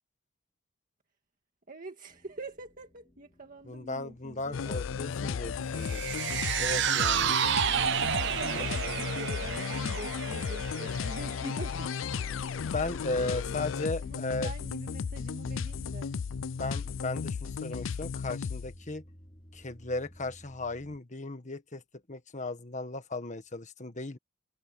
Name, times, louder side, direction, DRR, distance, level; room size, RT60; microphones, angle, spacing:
voice 1, 1.7-4.8 5.2-5.8 7.7-11.9 14.0-16.1, right 1 dB, 45° right, 1.9 m, -45 dB
sound 1, 2.1-21.0, equal, 25° left, 2.9 m, -54 dB
voice 2, 3.6-6.0 6.6-7.4 8.5-8.9 12.7-14.5 16.6-19.0 19.5-21.8 22.1-24.2, left 2 dB, 40° left, 1.6 m, -36 dB
sound 2, 4.5-18.8, left 6 dB, 85° left, 0.4 m, -34 dB
sound 3, 5.8-12.3 12.6-12.7, right 10 dB, 60° right, 0.5 m, -31 dB
head